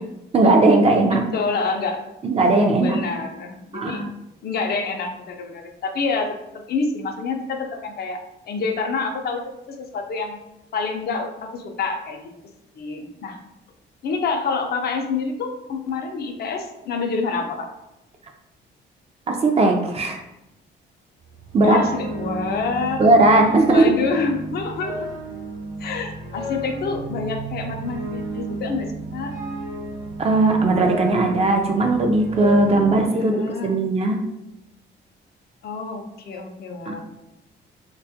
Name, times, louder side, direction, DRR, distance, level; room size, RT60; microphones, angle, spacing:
voice 1, 0.3-1.2 2.2-3.0 3.7-4.1 19.3-20.2 21.5-21.8 23.0-23.9 30.2-33.4 33.6-34.2 36.9-37.0, right 2 dB, 30° right, 3 dB, 0.3 m, -18 dB
voice 2, 1.1-2.0 2.8-4.0 4.4-6.4 6.7-8.2 8.5-10.4 10.7-12.3 12.8-13.4 14.0-17.7 21.6-23.1 23.7-25.1 25.8-29.3 33.2-33.7 35.6-37.0, left 4 dB, 55° left, 4 dB, 0.4 m, -27 dB
sound 1, 21.2-33.0, right 2 dB, 85° right, 0.7 m, -33 dB
2.2 x 2.1 x 2.6 m, 0.89 s
cardioid pair, 90°, 20 cm